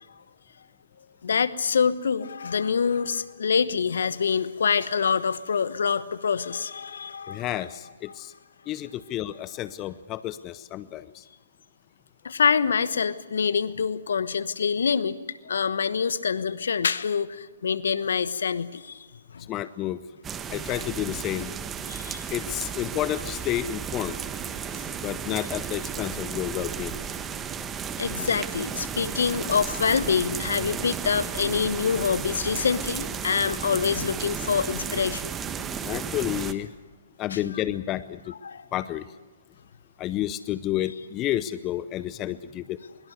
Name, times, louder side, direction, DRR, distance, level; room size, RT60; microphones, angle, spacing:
voice 1, 1.2-7.5 8.1-8.2 12.2-15.2 15.4-19.5 20.7-20.9 21.9-22.2 28.0-35.3 37.3-37.6 38.3-38.7, left 6 dB, 65° left, 14 dB, 1.2 m, -26 dB
voice 2, 7.3-8.3 8.7-11.2 19.5-20.0 20.5-21.5 22.3-24.2 25.0-27.1 35.8-36.7 37.2-38.3 38.7-39.0 40.0-42.8, left 13 dB, 25° left, 15 dB, 0.7 m, -30 dB
sound 1, 20.2-36.5, right 7 dB, 15° right, 1.3 m, -34 dB
23.0 x 22.5 x 8.1 m, 1.2 s
figure-of-eight pair, 125°, 0 cm